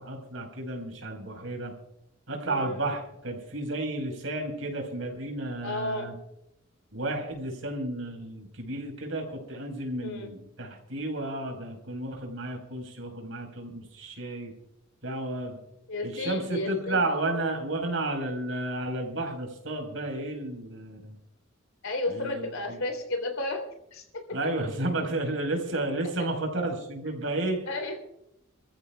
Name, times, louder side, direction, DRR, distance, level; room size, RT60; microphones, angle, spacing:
voice 1, 0.0-1.7 2.3-6.1 6.9-14.5 15.0-15.6 16.0-21.1 22.1-22.8 24.3-27.6, right 2 dB, 75° right, 2 dB, 4.6 m, -32 dB
voice 2, 5.6-6.1 10.0-10.3 15.9-17.0 21.8-23.6 23.9-24.4 26.2-26.3 27.7-28.0, left 2 dB, 85° left, 4 dB, 3.3 m, -33 dB
28.5 x 14.5 x 2.4 m, 0.83 s
head